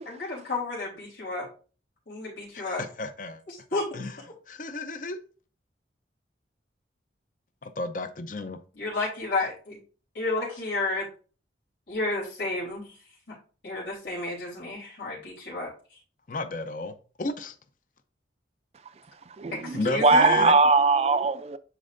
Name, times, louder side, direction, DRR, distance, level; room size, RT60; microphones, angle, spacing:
voice 1, 0.1-1.5 2.1-2.8 3.7-3.9 8.8-9.8 10.2-11.1 11.9-12.9 13.6-15.7 19.5-20.4, left 2 dB, 90° left, 3.5 m, -31 dB
voice 2, 2.5-3.4 3.9-4.2 4.5-5.2 7.6-8.6 16.3-17.5 19.7-20.6, left 3 dB, 45° left, 0.6 m, -33 dB
voice 3, 19.4-21.6, right 3 dB, 35° right, 0.4 m, -21 dB
10.0 x 4.3 x 2.6 m
head